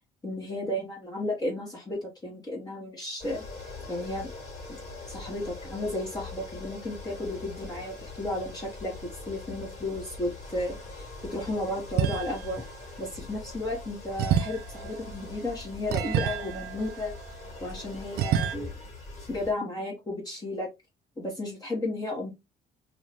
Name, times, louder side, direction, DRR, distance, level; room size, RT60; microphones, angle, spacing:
voice 1, 0.2-4.3 4.7-4.8 5.1-12.6 13.0-17.1 17.6-18.7 19.3-20.7 21.2-22.3, left 1 dB, 25° left, -2 dB, 1.0 m, -33 dB
sound 1, 3.2-19.5, left 3 dB, 40° left, 1.8 m, -42 dB
sound 2, 12.0-12.7 14.2-17.6 18.2-18.6, right 9 dB, 70° right, 0.4 m, -29 dB
2.6 x 2.4 x 3.2 m, 0.23 s
cardioid pair, 110°, 17 cm